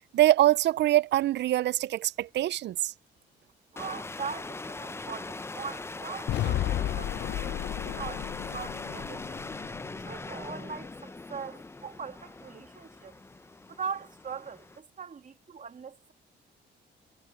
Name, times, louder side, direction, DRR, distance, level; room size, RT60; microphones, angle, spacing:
voice 1, 0.0-2.9, right 14 dB, 60° right, 0.4 m, -24 dB
voice 2, 3.7-9.4 9.9-13.1 13.7-16.1, right 6 dB, 40° right, 2.2 m, -41 dB
sound 1, 3.8-14.8, left 3 dB, 15° left, 0.5 m, -41 dB
sound 2, 6.3-10.4, left 13 dB, 60° left, 0.6 m, -33 dB
cardioid pair, 90°, 20 cm